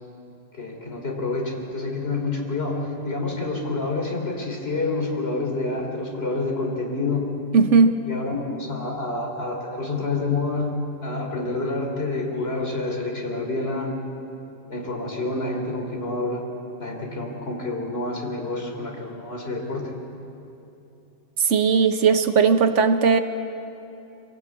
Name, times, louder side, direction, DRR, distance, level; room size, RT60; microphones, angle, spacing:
voice 1, 0.5-7.4 8.1-13.9 14.7-16.4 16.8-19.9, left 3 dB, 55° left, 1 dB, 3.4 m, -28 dB
voice 2, 7.5-8.0 21.4-23.2, right 5 dB, 80° right, 9 dB, 1.3 m, -18 dB
24.0 x 17.0 x 8.5 m, 2.8 s
omnidirectional pair, 1.2 m